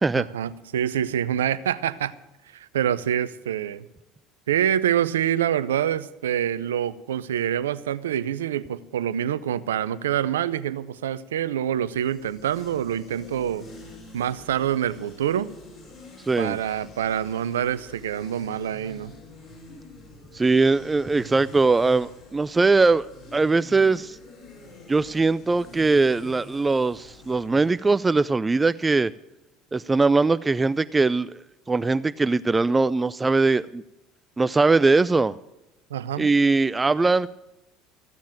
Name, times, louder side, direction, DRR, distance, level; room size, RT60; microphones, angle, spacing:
voice 1, 0.1-2.2 2.5-3.8 4.5-13.7 14.1-15.5 16.4-19.1 35.9-36.3, right 10 dB, 85° right, 15 dB, 0.6 m, -26 dB
sound 1, 12.0-27.7, left 1 dB, 45° left, 5.6 m, -47 dB
voice 2, 16.3-16.6 20.3-23.1 23.3-24.2 24.9-29.1 29.7-31.3 31.7-33.8 34.4-35.3 36.2-37.3, right 3 dB, 20° right, 15 dB, 0.4 m, -21 dB
15.0 x 7.3 x 8.9 m, 0.93 s
hypercardioid pair, 75°, 0 cm